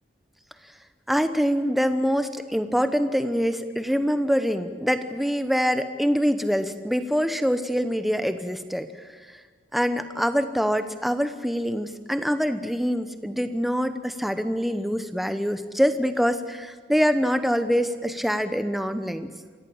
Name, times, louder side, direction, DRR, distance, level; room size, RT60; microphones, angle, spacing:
voice 1, 1.1-8.9 9.3-9.4 9.7-19.3, equal, ahead, 9 dB, 0.9 m, -25 dB
25.0 x 16.0 x 8.8 m, 1.5 s
head